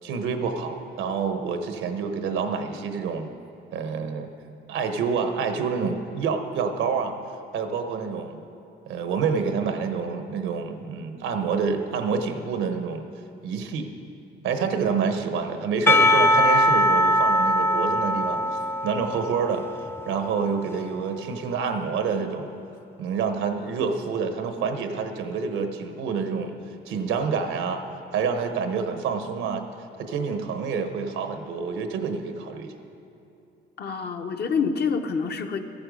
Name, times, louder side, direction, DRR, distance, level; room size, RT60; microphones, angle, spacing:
voice 1, 0.0-3.3 3.7-4.3 4.7-7.2 7.5-8.4 8.9-13.0 13.4-13.9 14.4-18.4 18.8-19.6 20.1-22.5 23.0-26.6 26.9-27.8 28.1-29.7 30.0-32.7, right 5 dB, 90° right, 7 dB, 1.0 m, -27 dB
Percussion / Church bell, 15.9-21.1, left 1 dB, 10° left, 0.5 m, -22 dB
voice 2, 33.8-35.6, left 5 dB, 55° left, 6 dB, 0.9 m, -27 dB
14.5 x 8.8 x 5.1 m, 2.7 s
cardioid pair, 90°, 20 cm